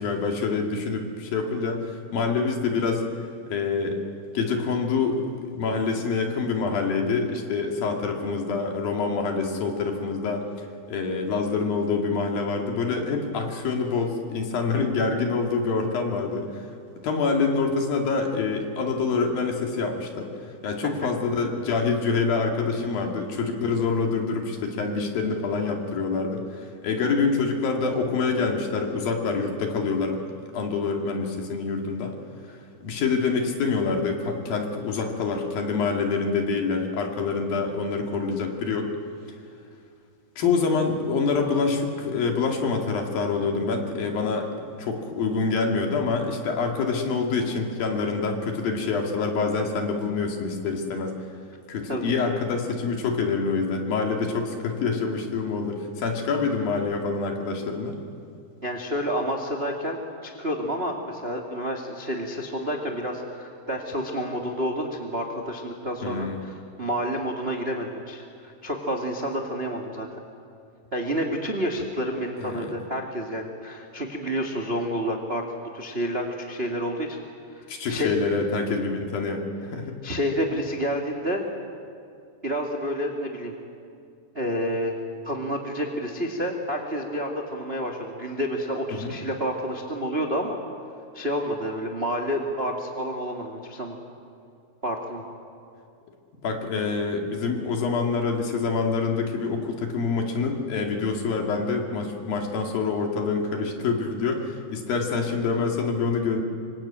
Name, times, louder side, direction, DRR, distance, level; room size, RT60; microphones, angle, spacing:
voice 1, 0.0-3.0 3.5-4.0 4.3-5.2 5.5-10.5 10.9-16.7 17.0-20.3 20.6-30.2 30.5-32.1 32.8-38.9 40.4-51.2 51.7-58.0 66.0-66.4 72.4-72.7 77.7-80.0 88.9-89.1 96.4-106.4, left 4 dB, 60° left, 2 dB, 3.9 m, -26 dB
voice 2, 58.6-70.1 70.9-77.2 77.5-78.1 80.0-81.4 82.4-83.5 84.3-85.0 85.2-90.6 91.1-94.0 94.8-95.2, equal, 30° right, 1 dB, 1.2 m, -29 dB
25.5 x 24.5 x 8.9 m, 2.4 s
omnidirectional pair, 5.0 m